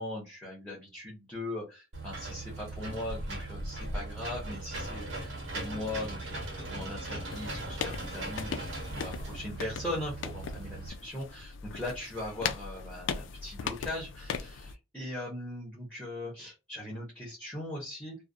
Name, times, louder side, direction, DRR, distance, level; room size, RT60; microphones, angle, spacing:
voice 1, 0.0-6.3 6.6-8.6 8.9-18.2, left 1 dB, 5° left, -4 dB, 0.7 m, -39 dB
Engine / Mechanisms, 1.9-10.9, right 2 dB, 75° right, 1.1 m, -39 dB
sound 1, 7.3-14.7, left 6 dB, 65° left, 0.3 m, -39 dB
2.4 x 2.0 x 2.5 m, 0.27 s
head